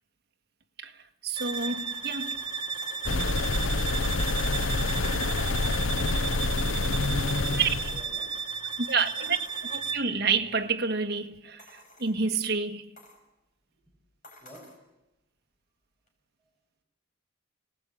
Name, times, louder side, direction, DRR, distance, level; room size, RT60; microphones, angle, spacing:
voice 1, 0.8-2.4 7.6-7.9 8.8-9.4 9.7-12.9, right 5 dB, 55° right, 1.8 m, -29 dB
sound 1, 1.4-10.2, right 6 dB, 25° right, 1.9 m, -34 dB
sound 2, 2.8-3.2 4.1-4.9 6.4-7.2 7.8-8.2 8.7-8.8 9.3-9.8 10.4-10.5 11.6-12.2 13.0-13.2 14.2-14.8 16.1-16.2, left 2 dB, 40° left, 5.5 m, -51 dB
sound 3, 3.0-8.0, left 2 dB, 75° left, 0.9 m, -27 dB
voice 2, 7.1-8.8 9.2-9.3 14.4-14.7, right 1 dB, ahead, 6.9 m, -52 dB
27.5 x 19.0 x 8.6 m
head